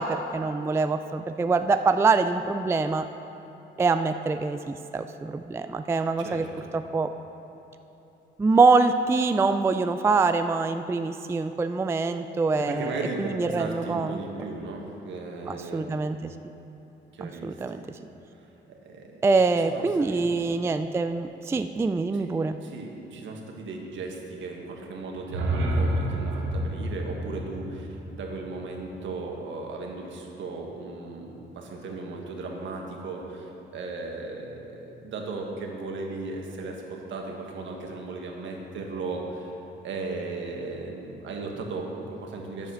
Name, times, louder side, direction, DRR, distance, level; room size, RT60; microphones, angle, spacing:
voice 1, 0.0-3.1 3.8-6.5 6.7-7.1 8.4-14.2 15.5-16.3 17.2-17.8 19.2-22.6, right 4 dB, 15° right, 9 dB, 0.3 m, -24 dB
voice 2, 6.2-6.7 12.6-16.0 17.1-17.9 18.3-19.2 19.6-20.2 22.1-22.3 22.6-39.5 39.8-42.7, right 3 dB, 70° right, 1 dB, 1.5 m, -36 dB
sound 1, 25.1-29.2, right 1 dB, 90° right, 1.1 m, -30 dB
9.1 x 7.3 x 6.3 m, 3.0 s
cardioid pair, 90°, 20 cm